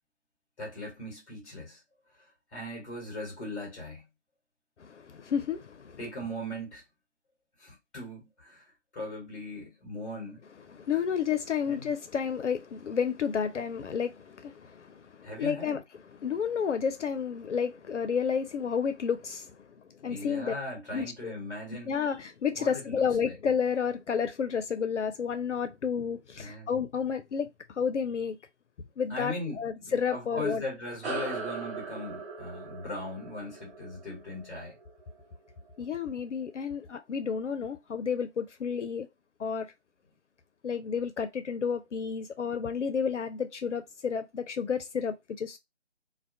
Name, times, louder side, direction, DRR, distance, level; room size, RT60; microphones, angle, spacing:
voice 1, 0.6-1.8 2.5-4.0 6.0-6.8 7.6-8.6 8.9-10.4 11.7-11.9 15.2-15.8 20.1-21.9 22.6-23.4 26.4-26.7 29.1-34.8, left 1 dB, 10° left, 0.8 m, -39 dB
voice 2, 4.8-6.0 10.7-15.8 16.2-20.5 20.9-21.3 21.9-28.4 29.0-30.6 35.8-39.1 39.4-39.7 40.6-45.6, left 6 dB, 70° left, 0.5 m, -31 dB
sound 1, 31.0-35.9, right 4 dB, 60° right, 0.8 m, -40 dB
2.3 x 2.1 x 2.6 m
figure-of-eight pair, 150°, 37 cm